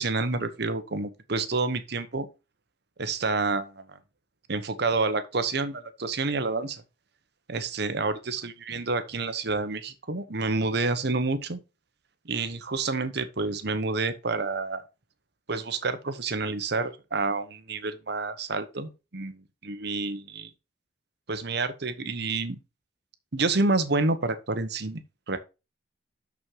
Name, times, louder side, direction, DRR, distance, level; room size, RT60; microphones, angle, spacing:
voice 1, 0.0-2.3 3.0-3.8 4.5-6.8 7.5-11.6 12.2-14.8 15.5-20.5 21.3-22.6 23.3-25.0 25.3-25.4, right 3 dB, 60° right, 1.1 m, -28 dB
6.4 x 6.1 x 5.4 m
head